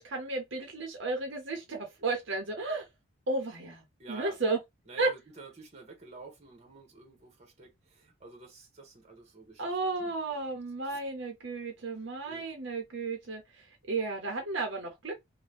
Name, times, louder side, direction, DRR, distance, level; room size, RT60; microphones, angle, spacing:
voice 1, 0.0-2.9 3.3-3.8 4.1-4.6 5.0-5.1 9.6-13.4 13.9-15.1, right 3 dB, 60° right, 0.8 m, -33 dB
voice 2, 4.0-4.4 4.9-10.4 10.8-11.0 11.9-12.5, right 3 dB, 35° right, 1.0 m, -50 dB
2.7 x 2.2 x 3.3 m
head